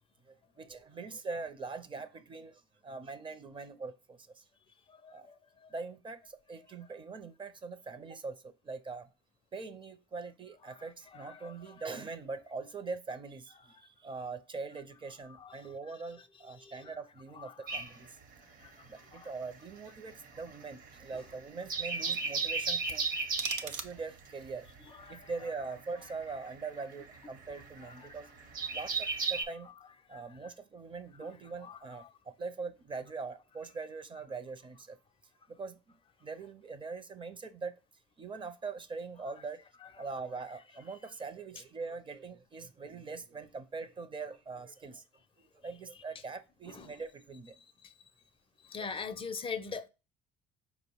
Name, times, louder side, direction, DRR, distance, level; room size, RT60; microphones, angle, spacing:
voice 1, 0.6-4.4 5.1-5.3 5.7-9.1 9.5-18.1 18.9-23.0 23.6-24.7 25.1-28.3 28.7-29.7 30.1-35.0 35.5-35.8 36.2-37.8 38.2-39.6 40.0-45.0 45.6-47.5 48.8-48.9, right 4 dB, 30° right, 0.5 m, -42 dB
voice 2, 5.0-5.3 11.1-11.5 15.4-15.5 16.6-16.8 17.4-17.5 18.6-18.7 19.1-19.3 25.0-25.3 27.9-28.0 30.1-30.2 31.6-31.8 46.8-46.9 48.7-49.9, left 5 dB, 30° left, 0.4 m, -41 dB
sound 1, 17.7-19.1 19.3-29.4, right 4 dB, 55° right, 0.9 m, -36 dB
sound 2, 22.9-24.4, right 7 dB, 85° right, 0.6 m, -41 dB
4.8 x 2.0 x 4.4 m
supercardioid pair, 90°, 18 cm